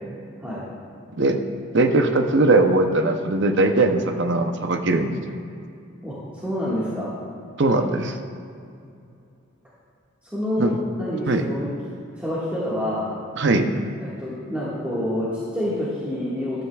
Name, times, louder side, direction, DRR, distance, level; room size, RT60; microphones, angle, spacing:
voice 1, 1.7-5.2 7.6-8.2 10.6-10.8 11.3-11.5 13.4-13.7, right 2 dB, 55° right, 6 dB, 0.7 m, -20 dB
voice 2, 6.0-7.1 10.3-11.7 12.1-13.1 14.0-16.6, left 1 dB, 5° right, -10 dB, 1.7 m, -27 dB
14.0 x 11.5 x 2.3 m, 2.5 s
head